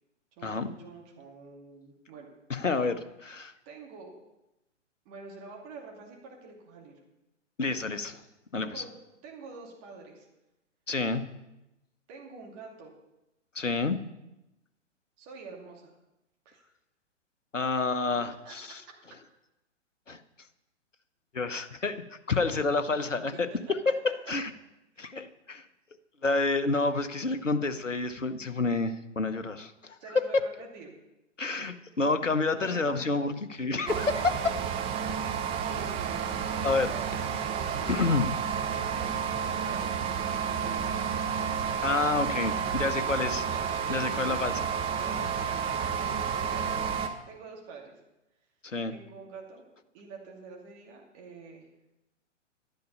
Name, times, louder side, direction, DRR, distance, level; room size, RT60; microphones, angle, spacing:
voice 1, 0.4-2.3 3.7-4.1 5.0-7.0 8.5-8.9 9.2-10.3 12.1-12.9 15.2-16.0 16.4-16.6 18.4-18.5 22.4-22.6 23.7-23.9 24.9-25.1 30.0-30.9 32.5-33.2 35.3-38.0 38.7-41.0 42.4-44.4 44.9-48.0 48.9-49.6 49.9-51.7, right 4 dB, 30° right, 0 dB, 2.5 m, -47 dB
voice 2, 2.5-3.5 7.6-8.2 8.5-8.8 10.9-11.3 13.5-14.0 17.5-18.8 20.1-20.2 21.3-22.0 22.3-24.5 25.0-25.6 26.2-30.0 31.4-33.3 33.6-34.4 36.6-36.9 37.9-38.3 41.8-43.4 43.9-44.7 48.6-48.9, left 3 dB, 85° left, 11 dB, 1.0 m, -29 dB
sound 1, 33.9-47.1, right 7 dB, 15° right, 0.7 m, -31 dB
12.0 x 10.5 x 5.5 m, 0.94 s
figure-of-eight pair, 115°, 36 cm